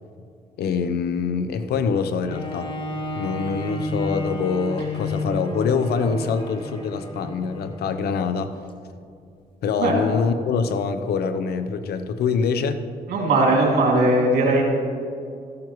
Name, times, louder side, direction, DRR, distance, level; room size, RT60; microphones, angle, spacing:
voice 1, 0.6-2.7 3.1-8.5 9.6-12.8, left 5 dB, 85° left, 10 dB, 0.7 m, -24 dB
Bowed string instrument, 2.3-7.9 8.6-8.7, left 1 dB, 30° left, 1.6 m, -31 dB
voice 2, 13.1-14.6, right 2 dB, 80° right, -2 dB, 2.8 m, -19 dB
13.5 x 12.5 x 3.1 m, 2.4 s
cardioid pair, 70°, 16 cm